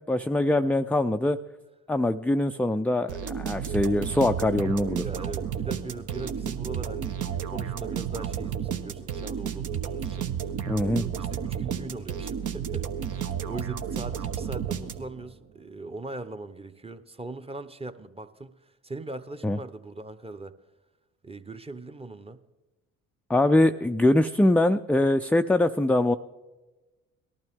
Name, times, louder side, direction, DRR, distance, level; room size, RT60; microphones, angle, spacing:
voice 1, 0.0-1.4 1.9-5.0 10.7-11.0 19.4-19.6 23.3-26.2, left 1 dB, 5° left, 7 dB, 0.4 m, -23 dB
sound 1, 3.1-15.3, right 8 dB, 60° right, 1.1 m, -32 dB
voice 2, 5.0-10.5 10.8-20.5 21.2-22.4, right 2 dB, 15° right, 9 dB, 0.9 m, -40 dB
18.0 x 12.0 x 3.6 m, 1.1 s
hypercardioid pair, 60°, 34 cm